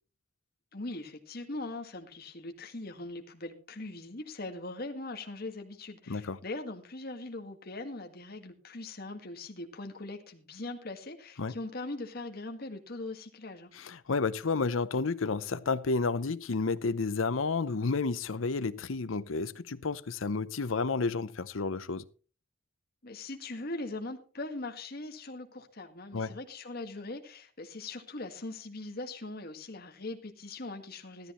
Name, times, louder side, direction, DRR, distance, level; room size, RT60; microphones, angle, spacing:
voice 1, 0.7-13.7 23.0-31.3, left 2 dB, 45° left, 1.8 m, -41 dB
voice 2, 6.1-6.4 11.4-11.5 13.7-22.0 26.1-26.3, left 4 dB, 75° left, 0.7 m, -31 dB
14.5 x 13.0 x 3.1 m
head